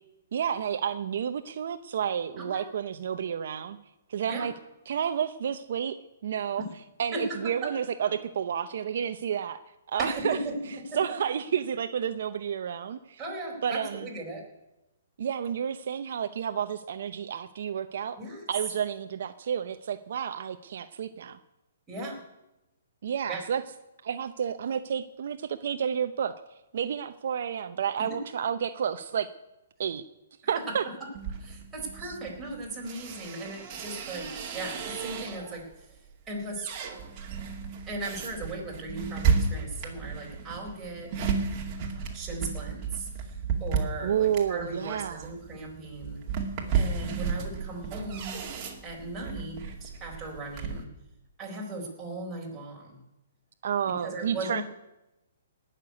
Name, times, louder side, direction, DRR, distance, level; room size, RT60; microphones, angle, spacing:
voice 1, 0.3-3.8 4.1-4.5 4.9-6.6 7.0-9.6 9.9-10.4 11.0-13.2 13.6-14.0 15.2-18.2 18.5-21.4 23.0-23.6 24.0-26.3 26.7-29.3 29.8-30.0 30.5-30.8 32.0-32.1 44.0-45.3 53.6-54.6, right 8 dB, 60° right, 9 dB, 0.7 m, -30 dB
voice 2, 7.1-7.7 10.0-10.6 10.9-11.0 13.2-14.4 18.2-18.4 21.9-22.2 23.3-23.4 28.0-28.2 30.5-30.9 31.4-36.0 36.3-36.7 37.9-41.1 42.1-46.2 46.7-48.4 48.8-50.9 51.4-53.0 53.9-54.6, right 2 dB, 10° right, -4 dB, 4.1 m, -37 dB
sound 1, 31.1-35.7 36.1-50.8, right 6 dB, 25° right, 2.3 m, -33 dB
18.5 x 6.7 x 9.5 m, 0.96 s
hypercardioid pair, 160°, 0 cm